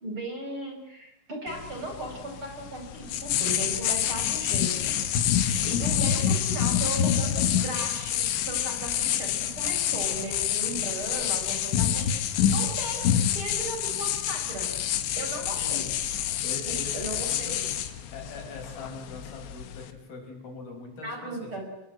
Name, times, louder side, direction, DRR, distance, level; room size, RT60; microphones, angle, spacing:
voice 1, 0.0-5.0 5.3-14.7 15.2-15.8 16.9-17.7 21.0-21.6, right 1 dB, 30° right, 3 dB, 5.7 m, -37 dB
sound 1, 1.5-19.9, left 9 dB, 85° left, 3.9 m, -27 dB
voice 2, 5.5-6.2 15.6-15.9 16.4-17.7 18.1-21.5, left 3 dB, 55° left, 3 dB, 6.9 m, -41 dB
27.0 x 22.5 x 7.8 m, 0.90 s
omnidirectional pair, 5.1 m